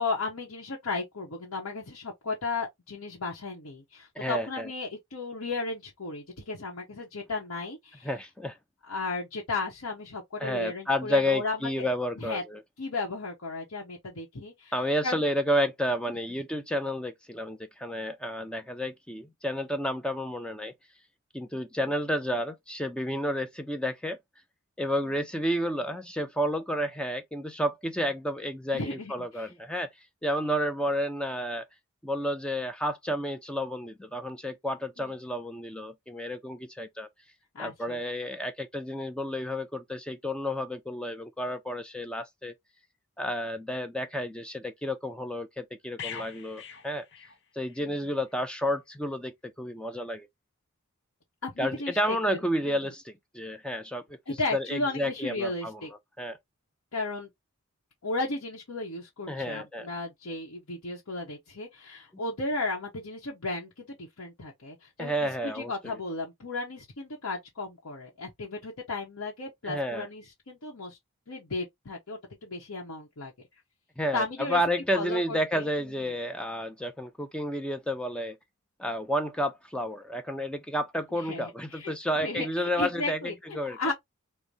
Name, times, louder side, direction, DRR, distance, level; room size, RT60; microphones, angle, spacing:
voice 1, 0.0-8.1 8.9-11.9 12.2-12.4 12.8-14.7 15.0-15.2 28.7-29.5 35.0-35.1 37.5-38.0 47.8-48.1 51.4-52.2 52.6-52.8 54.3-55.9 56.9-57.3 58.0-71.0 71.3-73.3 74.1-74.6 74.9-75.7 81.2-81.9 82.2-83.9, left 3 dB, 90° left, 0.9 m, -35 dB
voice 2, 4.2-4.7 8.0-8.5 10.4-12.6 14.7-20.7 21.3-24.2 24.8-29.9 30.2-31.7 32.0-37.1 37.6-42.5 43.2-47.0 47.5-50.3 51.6-54.2 54.5-55.8 56.2-56.4 59.3-59.9 65.0-66.0 69.6-70.1 74.0-78.4 78.8-83.8, equal, 5° left, 0.4 m, -31 dB
sound 1, 46.0-47.9 48.2-48.4, left 7 dB, 55° left, 0.6 m, -43 dB
4.6 x 2.1 x 2.6 m
head